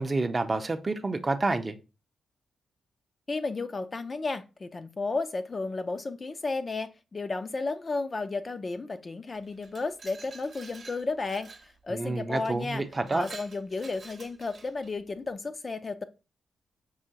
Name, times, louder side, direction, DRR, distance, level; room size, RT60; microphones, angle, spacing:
voice 1, 0.0-1.7 11.9-13.2, right 3 dB, 30° right, 0.5 m, -28 dB
voice 2, 3.3-12.8 13.1-16.0, left 3 dB, 35° left, 0.4 m, -33 dB
Glass, 9.4-11.7 12.4-12.5 12.9-14.9, right 4 dB, 45° right, 0.9 m, -49 dB
5.5 x 2.9 x 2.7 m
cardioid pair, 95°, 0 cm